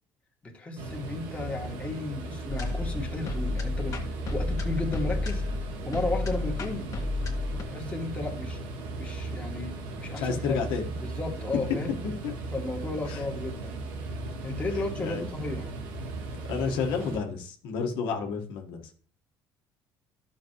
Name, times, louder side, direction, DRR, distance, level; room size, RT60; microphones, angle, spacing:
voice 1, 0.4-5.4 5.9-6.9 7.7-8.6 9.0-10.6 11.0-12.0 12.5-13.8 14.4-15.7, left 2 dB, 15° left, -1 dB, 2.2 m, -34 dB
sound 1, 0.8-17.2, right 2 dB, 85° right, 1.7 m, -37 dB
sound 2, 2.5-7.6, left 2 dB, 45° left, 1.7 m, -31 dB
voice 2, 10.2-10.9 12.2-12.3 13.1-13.2 15.0-15.2 16.5-18.8, left 5 dB, 80° left, 2 dB, 1.6 m, -30 dB
12.0 x 6.4 x 3.1 m, 0.43 s
cardioid pair, 120°, 8 cm